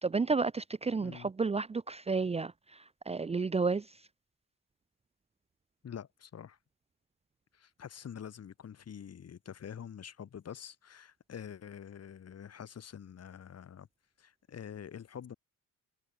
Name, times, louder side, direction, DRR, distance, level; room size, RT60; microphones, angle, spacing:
voice 1, 0.0-4.0, right 4 dB, 20° right, 0.7 m, -32 dB
voice 2, 1.0-1.3 5.8-6.6 7.5-13.9 14.2-15.4, left 8 dB, 55° left, 5.4 m, -46 dB
cardioid pair, 90°, 30 cm